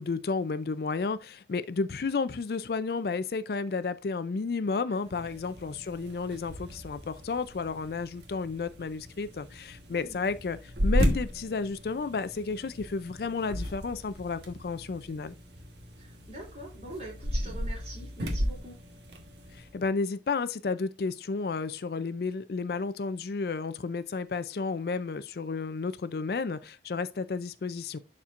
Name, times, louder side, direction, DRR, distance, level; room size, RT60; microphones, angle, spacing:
voice 1, 0.0-15.3 19.5-28.0, left 4 dB, 60° left, 0.4 m, -32 dB
voice 2, 4.9-5.2 9.9-10.2 16.0-18.8, right 2 dB, 35° right, 3.2 m, -45 dB
sound 1, 5.0-19.8, equal, 75° right, 1.3 m, -35 dB
11.5 x 4.3 x 2.5 m
head